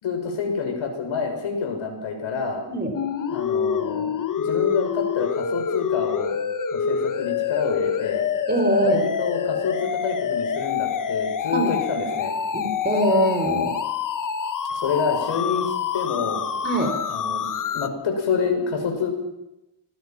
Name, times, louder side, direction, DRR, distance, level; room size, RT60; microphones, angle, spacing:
voice 1, 0.0-2.6 3.3-6.4 6.7-8.2 8.8-12.3 14.7-16.4 17.1-17.5 17.7-19.1, left 5 dB, 75° left, 3 dB, 6.4 m, -27 dB
sound 1, 2.9-17.9, left 7 dB, 40° left, 1.1 m, -26 dB
voice 2, 8.5-9.0 11.5-11.7 12.5-13.7 16.6-16.9, equal, 20° right, 5 dB, 4.1 m, -22 dB
26.5 x 20.5 x 6.0 m, 0.93 s
wide cardioid pair, 165°, 47 cm